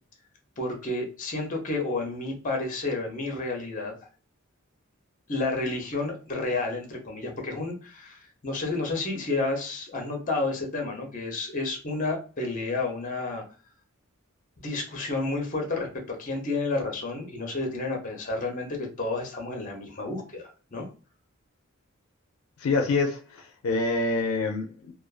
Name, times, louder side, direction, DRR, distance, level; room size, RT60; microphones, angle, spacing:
voice 1, 0.6-3.9 5.3-13.4 14.6-20.9, left 3 dB, 40° left, 2 dB, 0.7 m, -31 dB
voice 2, 22.6-24.9, left 3 dB, 75° left, 3 dB, 0.4 m, -26 dB
2.4 x 2.3 x 2.4 m, 0.35 s
head